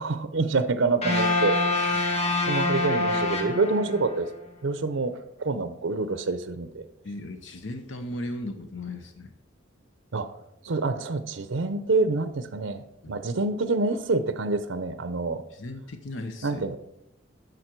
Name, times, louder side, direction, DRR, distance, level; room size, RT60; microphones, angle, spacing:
voice 1, 0.0-2.1 2.5-4.3 4.6-6.9 10.1-10.3 10.6-15.4 16.4-16.8, right 3 dB, 85° right, 11 dB, 0.6 m, -27 dB
sound 1, 1.0-4.3, left 2 dB, 35° left, 1.6 m, -25 dB
voice 2, 1.9-2.5 7.0-9.3 13.0-13.1 15.5-16.6, left 1 dB, 75° left, 6 dB, 0.8 m, -37 dB
11.0 x 6.4 x 4.5 m, 0.82 s
head